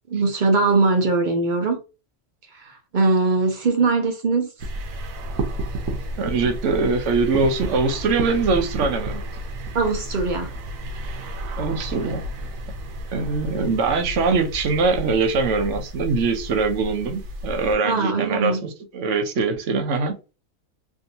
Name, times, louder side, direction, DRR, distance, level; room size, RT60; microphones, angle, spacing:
voice 1, 0.1-1.8 2.5-4.5 9.7-10.5 17.8-18.6, right 3 dB, 50° right, 0.6 m, -21 dB
sound 1, 4.6-17.8, right 1 dB, 90° right, 1.1 m, -31 dB
voice 2, 6.2-9.2 11.6-12.2 13.1-20.2, right 4 dB, 70° right, 1.0 m, -22 dB
3.5 x 2.7 x 2.6 m
omnidirectional pair, 1.4 m